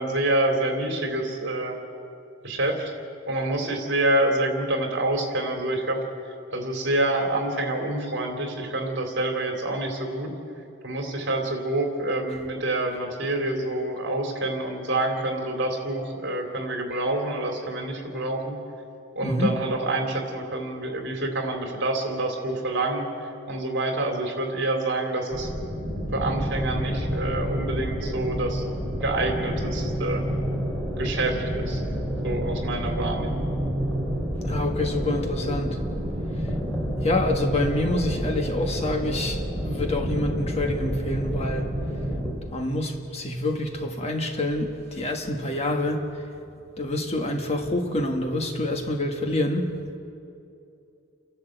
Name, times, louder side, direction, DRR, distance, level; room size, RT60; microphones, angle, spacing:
voice 1, 0.0-1.7 2.4-2.9 3.3-6.0 6.5-10.3 10.8-18.6 19.1-25.5 26.1-28.7 29.0-30.2 31.0-31.8 32.2-33.5, right 2 dB, 55° right, 3 dB, 3.3 m, -27 dB
voice 2, 19.2-19.6 34.4-35.8 37.0-41.7 42.5-46.0 46.8-49.7, left 1 dB, 30° left, 4 dB, 1.5 m, -27 dB
sound 1, 25.3-42.3, equal, ahead, 3.7 m, -29 dB
29.5 x 12.0 x 8.0 m, 2.7 s
head